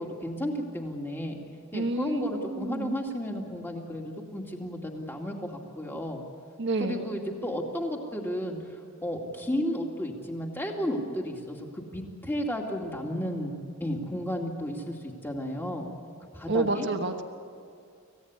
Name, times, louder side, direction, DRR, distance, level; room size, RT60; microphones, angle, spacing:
voice 1, 0.0-1.4 1.7-6.2 6.8-13.5 13.8-15.9 16.3-16.9, equal, 10° left, 1 dB, 2.4 m, -33 dB
voice 2, 1.7-2.9 6.6-7.1 16.5-17.2, right 2 dB, 50° right, 5 dB, 1.2 m, -29 dB
26.0 x 16.5 x 9.5 m, 2.4 s
head